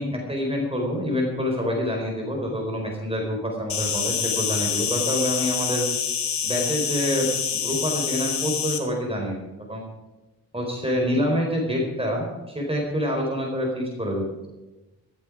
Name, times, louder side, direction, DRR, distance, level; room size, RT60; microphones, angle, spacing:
voice 1, 0.0-5.8 6.4-9.4 9.7-9.9 10.5-12.3 12.5-14.3, equal, 15° right, -1 dB, 4.5 m, -26 dB
Insect, 3.7-8.8, left 7 dB, 85° left, 1.5 m, -26 dB
14.0 x 13.5 x 5.1 m, 1.1 s
cardioid pair, 55°, 40 cm